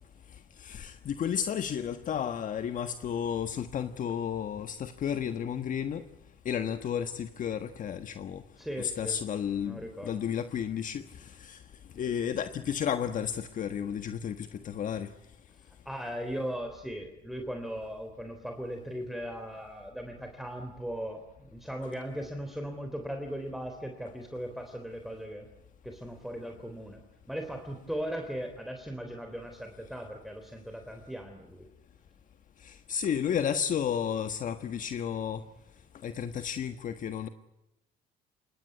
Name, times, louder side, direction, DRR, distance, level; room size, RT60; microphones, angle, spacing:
voice 1, 0.6-6.0 6.4-8.4 8.8-11.6 12.0-15.1 32.6-35.4 36.0-37.3, left 8 dB, 50° left, 9 dB, 1.4 m, -32 dB
voice 2, 8.6-9.2 9.7-10.2 15.9-25.5 25.8-27.0 27.3-31.7, equal, ahead, 5 dB, 3.6 m, -38 dB
27.0 x 21.5 x 9.5 m, 0.91 s
cardioid pair, 110°, 17 cm